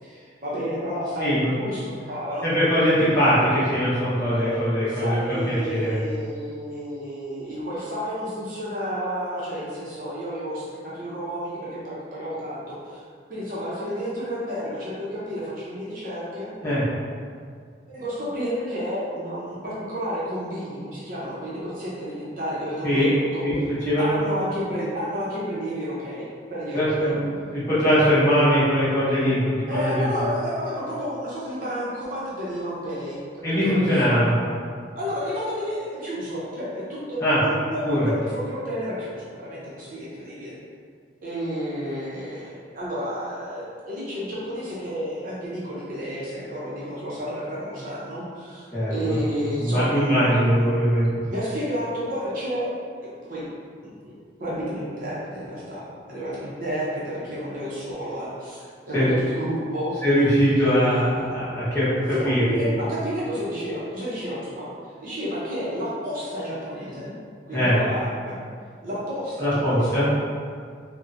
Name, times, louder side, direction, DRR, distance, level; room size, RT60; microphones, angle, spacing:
voice 1, 0.0-2.5 4.2-13.0 13.3-16.5 17.9-23.4 24.0-27.1 29.6-33.2 33.5-34.0 35.0-40.6 41.2-50.6 51.3-52.7 53.0-53.5 53.8-54.1 54.4-59.9 60.6-61.4 62.1-64.7 65.0-67.1 67.5-68.4 68.8-70.1, equal, 45° right, -9 dB, 0.6 m, -31 dB
voice 2, 1.2-1.5 2.4-6.0 16.6-16.8 22.8-23.1 23.4-23.6 23.8-24.2 26.7-30.1 33.4-34.3 37.2-37.4 37.8-38.1 48.7-49.2 49.6-51.1 58.9-59.1 60.0-62.7 67.5-67.7 69.4-70.1, equal, 15° left, -13 dB, 0.9 m, -21 dB
2.8 x 2.1 x 2.4 m, 2.1 s
head